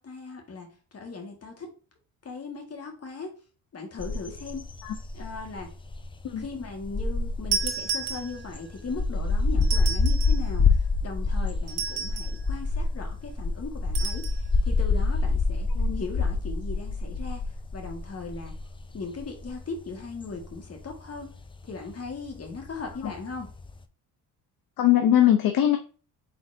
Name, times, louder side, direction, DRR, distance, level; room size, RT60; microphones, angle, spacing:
voice 1, 0.0-1.7 2.2-3.4 3.7-4.7 5.1-5.7 6.4-15.7 15.9-17.4 17.7-18.6 18.9-21.3 21.6-23.5, left 4 dB, 40° left, 2 dB, 1.7 m, -38 dB
sound 1, 4.0-23.8, left 3 dB, 15° left, 0.4 m, -27 dB
sound 2, 7.5-8.7 9.6-10.5 11.7-12.4 13.9-14.4, right 7 dB, 80° right, 1.0 m, -32 dB
voice 2, 24.8-25.8, left 11 dB, 60° left, 5 dB, 0.7 m, -21 dB
4.4 x 4.0 x 2.6 m, 0.37 s
cardioid pair, 90°, 39 cm